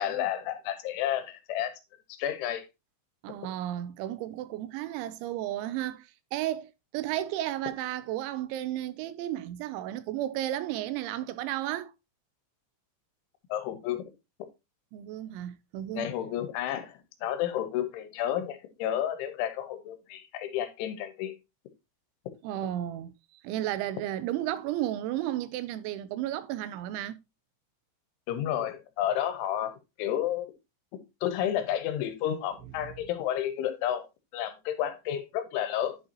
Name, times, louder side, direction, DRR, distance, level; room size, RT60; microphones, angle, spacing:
voice 1, 0.0-1.7 2.1-2.7 13.5-14.1 15.9-21.3 28.3-30.5 31.2-34.1 34.3-36.0, left 11 dB, 80° left, 3.4 m, -31 dB
voice 2, 3.2-11.9 14.9-16.1 22.4-23.1 23.4-27.2, right 13 dB, 85° right, 2.9 m, -33 dB
10.5 x 5.6 x 2.8 m
omnidirectional pair, 5.5 m